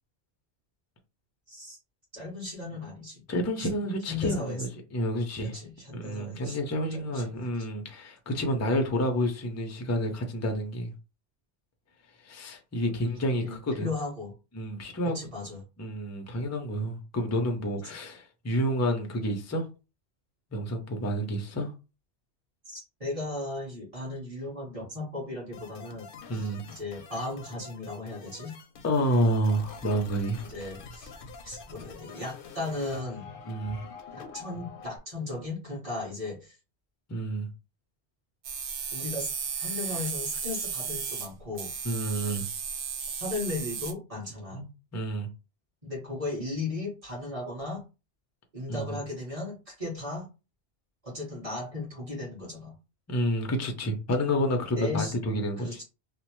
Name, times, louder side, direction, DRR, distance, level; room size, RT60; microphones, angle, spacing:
voice 1, 2.1-3.2 3.6-3.7 4.0-4.7 5.4-6.6 6.9-7.7 13.4-14.3 15.0-15.6 17.8-17.9 22.6-28.5 30.4-31.1 31.4-33.3 34.3-36.6 38.9-39.3 39.6-41.7 43.2-44.6 45.8-47.8 48.5-50.3 51.0-52.7 54.8-55.1 55.6-55.8, left 2 dB, 30° right, 1.5 m, -36 dB
voice 2, 3.3-5.6 5.9-10.9 12.3-13.9 14.5-15.2 15.8-19.7 20.5-21.7 26.3-26.6 28.8-30.5 33.5-33.8 37.1-37.5 41.8-42.4 44.5-45.3 48.7-49.0 53.1-55.8, equal, 25° left, 0.3 m, -29 dB
sound 1, 25.5-35.0, left 4 dB, 60° left, 0.7 m, -46 dB
sound 2, 38.4-41.3 41.6-43.9, right 6 dB, 90° right, 0.9 m, -34 dB
3.0 x 2.1 x 3.0 m
omnidirectional pair, 1.1 m